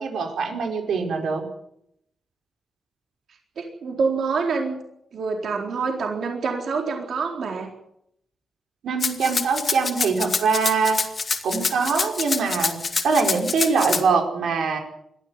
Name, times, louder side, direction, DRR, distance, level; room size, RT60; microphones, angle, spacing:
voice 1, 0.0-1.4 8.8-11.0 11.4-12.8 13.0-14.8, right 5 dB, 85° right, 3 dB, 4.8 m, -23 dB
voice 2, 3.6-4.8 5.1-7.7, right 4 dB, 65° right, 2 dB, 4.1 m, -26 dB
Rattle (instrument), 9.0-14.0, left 4 dB, 35° left, 2.3 m, -26 dB
21.5 x 15.0 x 9.5 m, 0.75 s
wide cardioid pair, 145°, 0 cm